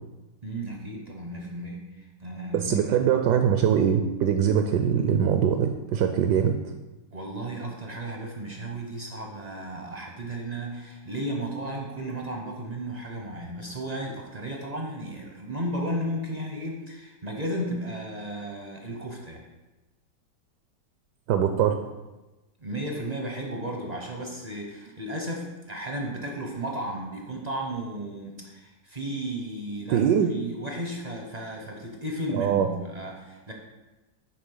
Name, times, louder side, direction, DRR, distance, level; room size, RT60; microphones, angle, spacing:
voice 1, 0.4-1.8 2.2-2.9 7.1-19.4 22.6-30.0 30.3-33.5, right 1 dB, 40° right, 0 dB, 0.6 m, -34 dB
voice 2, 2.5-6.5 21.3-21.8 29.9-30.3 32.3-32.7, right 8 dB, 75° right, 6 dB, 1.1 m, -22 dB
8.8 x 3.5 x 5.5 m, 1.1 s
omnidirectional pair, 1.9 m